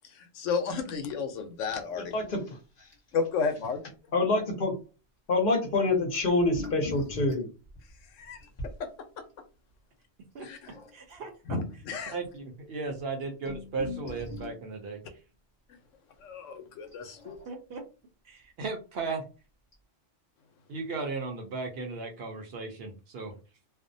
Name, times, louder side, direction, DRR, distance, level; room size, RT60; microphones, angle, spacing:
voice 1, 0.1-2.1 3.1-3.8 8.1-8.4 10.4-10.7 11.5-12.1 16.2-17.4, left 5 dB, 90° left, 7 dB, 1.0 m, -32 dB
sound 1, 1.7-2.3 2.5-2.6 2.9-3.1 3.6-3.7 6.2-8.8 10.4-11.2 11.9-12.0 12.2-12.4 13.0-14.7 16.8-17.7 19.0-19.1 19.7-19.8, left 3 dB, 30° left, 1.0 m, -41 dB
voice 2, 4.1-4.7 5.3-7.5, left 2 dB, 50° left, 1 dB, 0.8 m, -26 dB
voice 3, 10.9-11.3 12.1-15.0 17.5-17.8 18.3-19.2 20.7-23.3, right 4 dB, 60° right, 3 dB, 0.8 m, -36 dB
2.5 x 2.0 x 2.6 m, 0.33 s
omnidirectional pair, 1.3 m